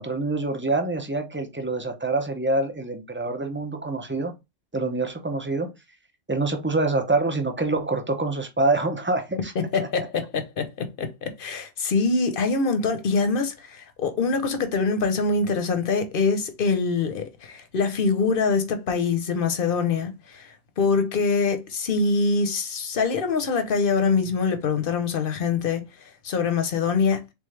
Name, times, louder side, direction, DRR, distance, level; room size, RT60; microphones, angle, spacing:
voice 1, 0.0-4.3 4.7-5.7 6.3-9.7, right 2 dB, 15° right, 0.4 m, -26 dB
voice 2, 9.5-27.3, left 4 dB, 50° left, 0.9 m, -24 dB
3.8 x 3.6 x 3.3 m
omnidirectional pair, 1.3 m